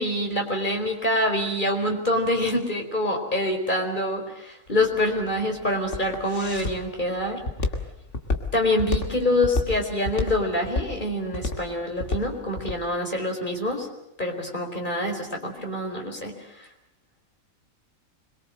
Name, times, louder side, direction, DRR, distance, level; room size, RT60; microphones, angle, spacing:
voice 1, 0.0-7.4 8.5-13.9 14.2-16.3, left 1 dB, 35° left, 2 dB, 4.7 m, -26 dB
Walk footsteps, 4.7-12.8, left 3 dB, 60° left, 2.7 m, -30 dB
26.0 x 23.0 x 7.8 m, 0.84 s
omnidirectional pair, 1.4 m